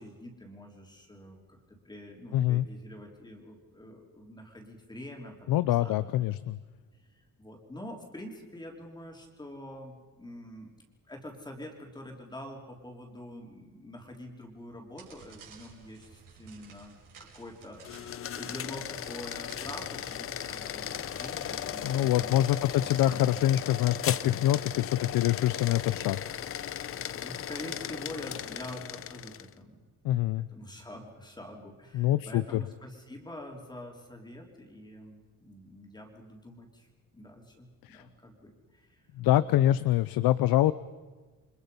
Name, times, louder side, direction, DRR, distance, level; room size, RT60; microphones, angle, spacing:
voice 1, 0.0-5.3 5.8-6.3 7.0-10.7 11.1-23.5 27.1-29.9 30.5-36.9 37.1-39.1, left 1 dB, 10° left, 1 dB, 3.7 m, -46 dB
voice 2, 2.3-2.7 5.5-6.6 21.8-26.2 30.0-30.5 31.9-32.6 37.8-38.0 39.2-40.7, left 13 dB, 80° left, 15 dB, 0.7 m, -25 dB
sound 1, 15.0-23.2, right 6 dB, 65° right, 6.0 m, -55 dB
sound 2, 17.8-29.5, left 9 dB, 40° left, 0.7 m, -37 dB
29.0 x 25.0 x 5.5 m, 1.3 s
cardioid pair, 150°, 34 cm